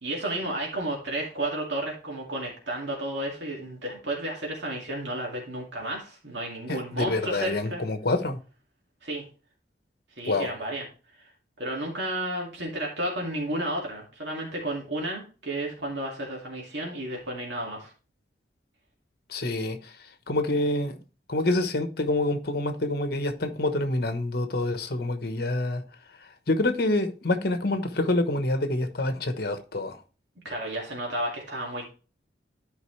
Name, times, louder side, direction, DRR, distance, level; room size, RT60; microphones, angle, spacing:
voice 1, 0.0-7.8 9.0-9.3 10.2-10.9 11.2-11.3 11.6-17.9 30.4-31.9, right 1 dB, 75° right, 2.3 m, -32 dB
voice 2, 6.7-8.4 10.3-10.5 19.3-19.9 20.3-21.0 21.3-25.8 26.5-30.0, left 2 dB, 60° left, 1.1 m, -27 dB
12.0 x 5.1 x 3.2 m
head